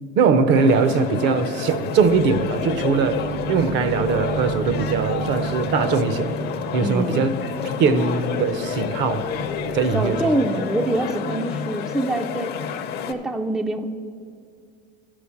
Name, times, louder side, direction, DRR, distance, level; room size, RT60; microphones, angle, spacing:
voice 1, 0.2-3.2 3.5-6.3 6.7-7.3 7.8-9.2 9.7-10.3, right 5 dB, 60° right, 11 dB, 0.7 m, -20 dB
sound 1, 0.5-13.1, left 7 dB, 50° left, 0.6 m, -30 dB
sound 2, 2.0-9.9, right 4 dB, 80° right, 1.0 m, -33 dB
voice 2, 6.8-7.3 9.9-12.6 13.1-13.8, right 1 dB, 5° right, 7 dB, 0.3 m, -25 dB
11.0 x 5.0 x 7.0 m, 2.3 s
cardioid pair, 125°, 21 cm